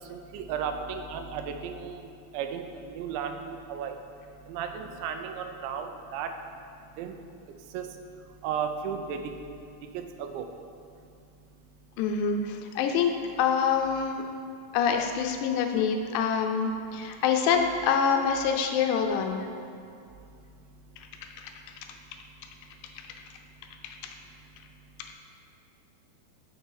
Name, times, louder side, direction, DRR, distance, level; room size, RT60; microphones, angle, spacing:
voice 1, 0.1-4.0 4.5-6.3 7.0-7.2 7.7-7.9 8.4-9.3 9.9-10.5, right 7 dB, 90° right, 6 dB, 2.9 m, -34 dB
voice 2, 12.0-13.1 13.4-14.2 14.7-19.5 21.0-21.1 21.4-21.5 23.0-23.1 23.8-24.2 25.0-25.1, left 6 dB, 80° left, 3 dB, 2.7 m, -26 dB
6.8 x 6.6 x 4.7 m, 2.5 s
omnidirectional pair, 5.1 m